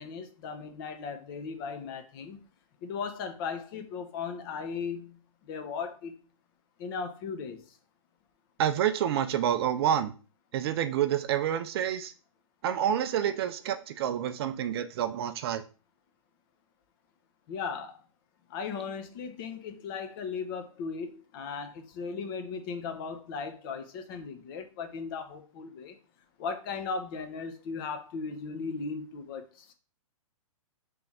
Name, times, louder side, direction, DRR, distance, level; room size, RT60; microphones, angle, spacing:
voice 1, 0.0-2.4 2.8-5.2 5.5-6.1 6.8-7.6 17.5-17.9 18.5-25.9 26.4-29.4, left 5 dB, 40° left, 0.8 m, -37 dB
voice 2, 8.6-10.1 10.5-12.1 12.6-15.6, right 10 dB, 45° right, 0.4 m, -28 dB
3.4 x 2.9 x 3.6 m
hypercardioid pair, 125°, 18 cm